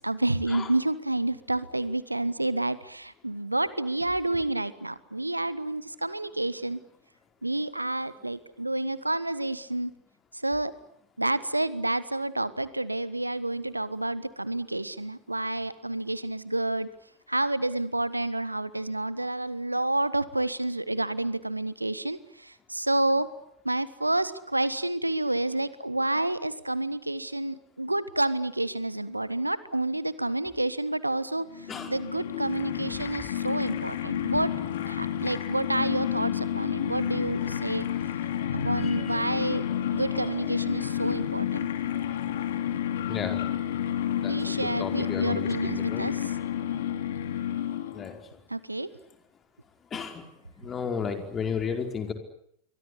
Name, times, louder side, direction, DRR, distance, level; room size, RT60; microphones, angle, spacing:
voice 1, 0.0-6.8 7.4-9.9 10.4-10.7 11.2-16.9 17.3-23.3 23.6-31.4 31.9-34.5 34.9-37.9 38.5-41.7 44.3-46.3 48.5-48.9, right 2 dB, 85° right, 16 dB, 1.4 m, -29 dB
sound 1, 31.5-48.2, left 10 dB, 60° left, 3.0 m, -30 dB
voice 2, 38.8-39.2 43.1-43.4 44.1-45.5 45.8-46.1 47.9-48.2 49.9-50.2 50.6-52.1, left 6 dB, 20° left, 6 dB, 4.9 m, -33 dB
28.5 x 24.0 x 8.4 m, 0.72 s
figure-of-eight pair, 90°, 0 cm